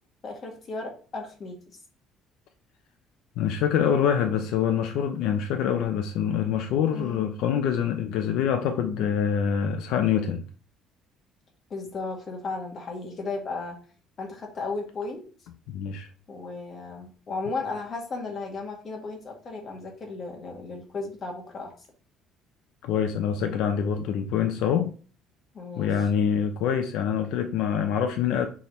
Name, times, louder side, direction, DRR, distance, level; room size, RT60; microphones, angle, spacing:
voice 1, 0.2-1.8 6.9-7.3 11.7-13.8 14.2-15.2 16.3-21.8 25.5-25.9, left 3 dB, 35° left, 1.8 m, -35 dB
voice 2, 3.4-10.4 15.7-16.1 22.8-24.9 25.8-28.5, left 8 dB, 75° left, 0.7 m, -25 dB
6.2 x 3.6 x 4.3 m
cardioid pair, 145°, 0 cm